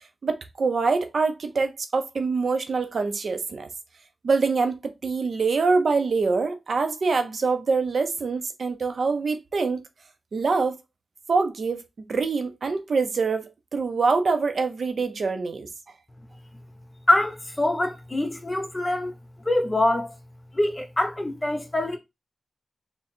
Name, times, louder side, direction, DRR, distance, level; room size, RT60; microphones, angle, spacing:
voice 1, 0.2-3.7 4.2-9.8 10.3-10.8 11.3-11.8 12.1-15.7, right 4 dB, 80° right, 0.6 m, -25 dB
voice 2, 17.1-19.1 19.4-20.1 20.5-22.0, left 1 dB, 25° left, 1.0 m, -24 dB
3.7 x 2.2 x 4.3 m
wide cardioid pair, 65°, 0 cm